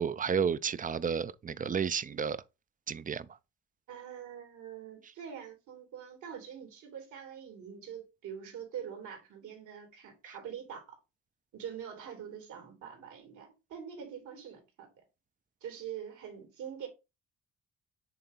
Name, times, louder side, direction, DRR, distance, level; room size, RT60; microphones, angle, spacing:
voice 1, 0.0-2.4 2.9-3.3, right 7 dB, 30° right, 0.5 m, -31 dB
voice 2, 3.9-11.0 11.5-15.0 15.6-16.9, right 8 dB, 80° right, 2.7 m, -44 dB
6.9 x 3.5 x 4.0 m
cardioid pair, 90°, 30 cm